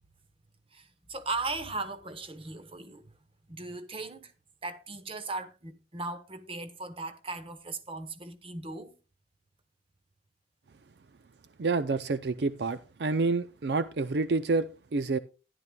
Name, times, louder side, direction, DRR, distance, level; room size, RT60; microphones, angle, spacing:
voice 1, 0.7-3.1 3.5-4.3 4.6-8.9, right 3 dB, 30° right, 1.0 m, -38 dB
voice 2, 11.6-15.2, right 3 dB, 65° right, 0.5 m, -28 dB
14.0 x 10.5 x 2.3 m
head